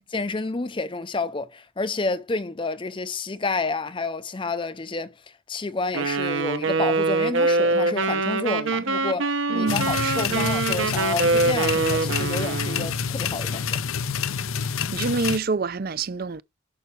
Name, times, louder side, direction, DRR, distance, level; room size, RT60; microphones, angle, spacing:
voice 1, 0.1-5.2 5.5-13.8, left 3 dB, 25° left, 0.5 m, -29 dB
Wind instrument woodwind instrument, 5.9-12.9, right 3 dB, 65° right, 0.9 m, -24 dB
voice 2, 9.5-10.5 14.9-16.4, right 4 dB, 45° right, 0.5 m, -27 dB
sound 1, 9.7-15.4, left 6 dB, 75° left, 0.6 m, -28 dB
11.0 x 5.8 x 3.2 m
head